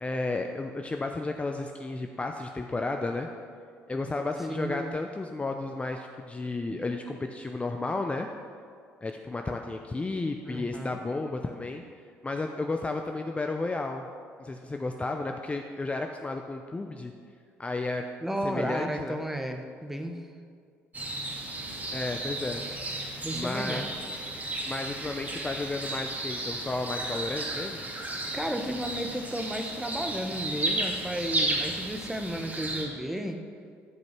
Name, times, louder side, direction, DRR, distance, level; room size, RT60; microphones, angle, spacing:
voice 1, 0.0-3.3 3.9-8.3 9.0-11.8 12.2-14.1 14.4-17.1 17.6-18.0 18.4-19.2 21.9-22.6 23.3-23.8 24.7-27.8, left 2 dB, 20° left, 4 dB, 0.6 m, -32 dB
voice 2, 4.5-4.9 10.5-11.0 18.2-20.2 23.2-23.9 28.3-33.4, equal, 5° right, 5 dB, 1.1 m, -33 dB
sound 1, 20.9-32.9, right 2 dB, 30° right, 2.2 m, -33 dB
11.0 x 5.2 x 6.0 m, 2.2 s
supercardioid pair, 65°, 6 cm